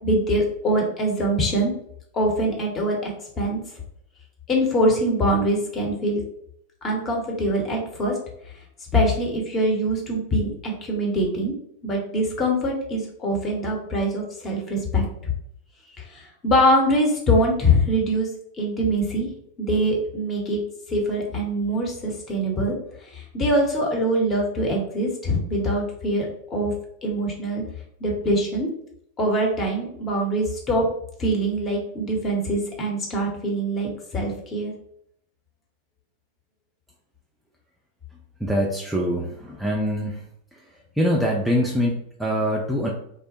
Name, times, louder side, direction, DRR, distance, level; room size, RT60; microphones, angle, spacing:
voice 1, 0.0-1.7 2.1-3.1 3.4-3.6 4.5-6.2 6.8-8.1 8.9-11.5 11.8-15.0 16.4-18.3 18.6-19.3 19.6-20.6 20.9-22.7 23.1-26.7 27.0-27.6 28.0-28.7 29.2-30.8 31.2-34.7, equal, 25° left, -1 dB, 0.8 m, -23 dB
voice 2, 38.4-40.2 41.0-42.9, equal, 5° right, -3 dB, 0.4 m, -24 dB
2.9 x 2.0 x 2.9 m, 0.70 s
figure-of-eight pair, 90°, 0 cm